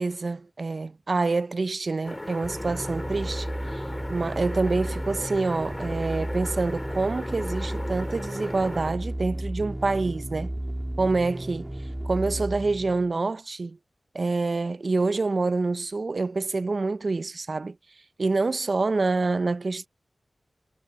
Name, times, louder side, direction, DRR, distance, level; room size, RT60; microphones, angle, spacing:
voice 1, 0.0-3.8 4.1-10.5 11.0-11.7 12.0-13.8 14.1-17.8 18.2-19.9, right 3 dB, 50° right, 0.5 m, -27 dB
sound 1, 2.0-8.9, left 1 dB, 20° left, 3.4 m, -37 dB
sound 2, 2.4-13.1, right 1 dB, 10° right, 3.2 m, -33 dB
wide cardioid pair, 115°, 0 cm